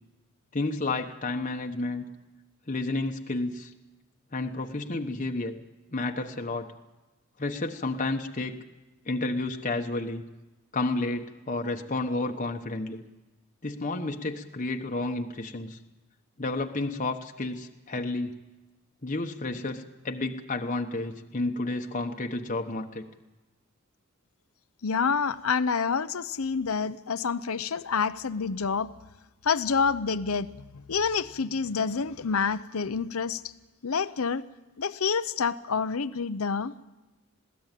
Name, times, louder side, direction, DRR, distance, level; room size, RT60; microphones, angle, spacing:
voice 1, 0.5-2.0 2.7-3.7 4.3-5.5 5.9-6.7 7.4-8.6 9.0-10.2 10.7-13.0 13.6-15.8 16.4-18.4 19.0-23.0, left 2 dB, 35° left, 3 dB, 1.1 m, -31 dB
voice 2, 24.8-28.9 29.4-33.5 33.8-34.4 34.8-36.8, left 5 dB, 85° left, 14 dB, 0.8 m, -28 dB
21.5 x 16.5 x 9.1 m, 1.1 s
head